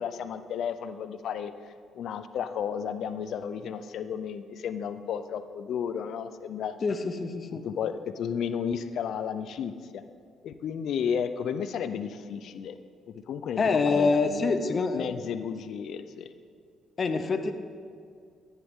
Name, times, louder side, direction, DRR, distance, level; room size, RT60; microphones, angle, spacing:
voice 1, 0.0-1.5 1.9-6.8 7.6-10.0 10.4-12.8 13.3-16.3, left 7 dB, 70° left, 11 dB, 0.6 m, -33 dB
voice 2, 6.8-7.6 13.6-15.1 17.0-17.5, left 4 dB, 40° left, 8 dB, 0.9 m, -26 dB
15.0 x 9.8 x 3.7 m, 2.3 s
cardioid pair, 90°, 0 cm